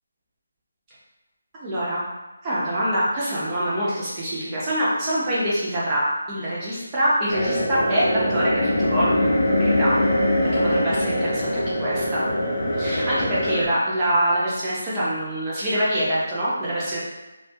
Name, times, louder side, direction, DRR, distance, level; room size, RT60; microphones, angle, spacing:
voice 1, 1.5-2.0 2.4-10.0 10.4-12.2 12.8-17.0, equal, 15° right, -9 dB, 0.5 m, -25 dB
sound 1, 7.3-13.7, left 1 dB, 45° left, 0.5 m, -22 dB
2.3 x 2.3 x 2.6 m, 1.1 s
figure-of-eight pair, 175°, 0 cm